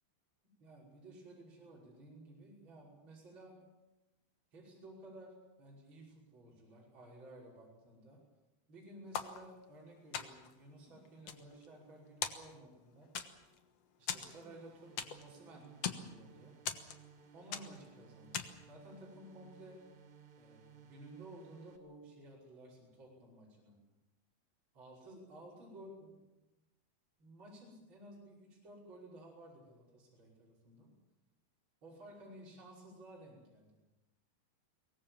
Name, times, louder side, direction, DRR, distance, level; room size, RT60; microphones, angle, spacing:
voice 1, 0.6-3.6 4.5-8.2 8.7-13.1 14.0-14.9 15.2-16.5 17.3-19.8 20.4-23.8 24.7-26.1 27.2-30.9 31.8-33.7, right 1 dB, 30° right, -4 dB, 6.1 m, -55 dB
sound 1, 9.1-9.8 10.1-10.6 11.1-11.9 12.2-12.8 13.2-13.6 14.1-15.4 15.6-16.1 16.7-17.2 17.5-17.9 18.3-18.7, left 8 dB, 65° left, 1.6 m, -41 dB
sound 2, 14.1-21.8, right 7 dB, 80° right, 4.2 m, -60 dB
23.5 x 20.0 x 7.3 m, 1.0 s
omnidirectional pair, 4.6 m